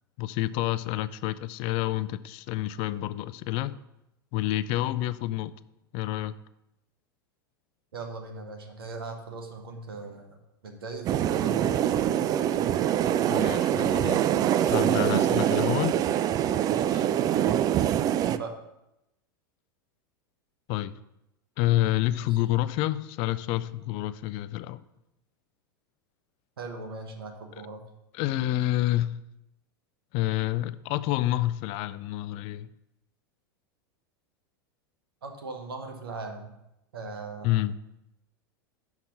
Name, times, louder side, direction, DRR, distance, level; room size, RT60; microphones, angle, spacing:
voice 1, 0.2-3.8 4.3-5.5 5.9-6.3 13.3-14.2 14.7-16.0 16.9-17.0 20.7-21.0 21.6-24.8 27.5-27.6 28.1-29.2 30.1-32.7 37.4-37.8, left 15 dB, 45° left, 16 dB, 0.3 m, -28 dB
voice 2, 7.9-10.4 10.6-12.1 18.2-18.5 22.3-22.4 26.6-27.8 35.2-36.5 36.9-37.5, right 3 dB, 80° right, 4 dB, 1.3 m, -39 dB
sound 1, 11.1-18.4, right 11 dB, 30° right, 0.3 m, -24 dB
5.8 x 5.8 x 5.4 m, 0.88 s
hypercardioid pair, 95°, 12 cm